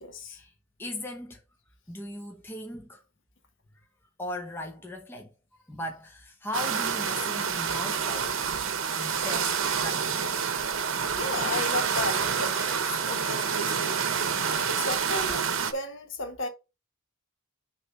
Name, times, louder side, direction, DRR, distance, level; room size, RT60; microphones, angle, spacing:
voice 1, 0.0-0.4 11.1-14.0 14.5-16.5, left 2 dB, 60° left, 1.3 m, -34 dB
voice 2, 0.8-1.4 1.9-3.0 4.2-5.3 5.7-8.4 9.0-10.3, left 1 dB, 10° left, 0.8 m, -38 dB
sound 1, 6.5-15.7, right 6 dB, 65° right, 0.9 m, -28 dB
6.5 x 3.2 x 5.9 m
head